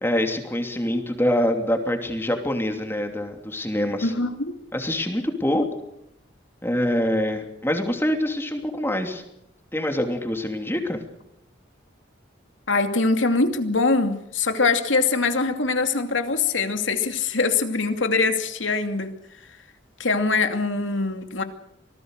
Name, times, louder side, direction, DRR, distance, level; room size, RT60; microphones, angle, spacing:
voice 1, 0.0-4.1 4.7-5.7 6.6-9.2 9.7-11.0, left 1 dB, 10° left, 4 dB, 2.9 m, -25 dB
voice 2, 4.0-4.6 12.7-19.1 20.0-21.4, left 3 dB, 80° left, 7 dB, 2.6 m, -23 dB
26.0 x 19.0 x 6.6 m, 0.80 s
head